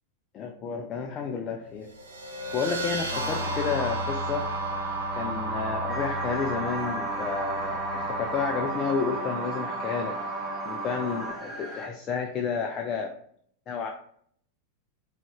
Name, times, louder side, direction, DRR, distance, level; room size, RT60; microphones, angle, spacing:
voice 1, 0.3-1.9 2.5-4.5 5.1-10.2 10.6-13.1 13.7-13.9, left 6 dB, 30° left, 2 dB, 0.4 m, -31 dB
sound 1, 1.8-8.8, equal, 70° right, 0.8 m, -36 dB
sound 2, 3.1-11.3, right 3 dB, 15° right, 1.6 m, -32 dB
sound 3, 5.9-11.9, left 1 dB, 10° left, 1.2 m, -40 dB
4.8 x 2.4 x 3.2 m, 0.63 s
figure-of-eight pair, 90°, 0 cm